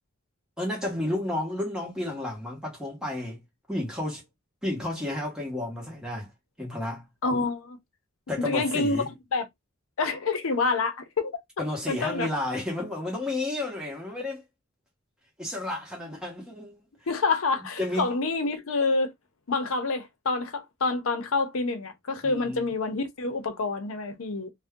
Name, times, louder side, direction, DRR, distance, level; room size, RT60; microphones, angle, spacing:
voice 1, 0.6-3.4 3.7-4.2 4.6-6.3 6.6-7.0 8.3-9.1 11.6-14.4 15.4-16.8 17.8-18.1 22.2-22.7, left 1 dB, 5° right, 1.1 m, -31 dB
voice 2, 7.2-7.8 8.4-9.5 10.0-11.4 11.9-12.3 17.1-19.1 19.5-24.5, left 3 dB, 80° left, 0.7 m, -27 dB
2.6 x 2.2 x 3.6 m
head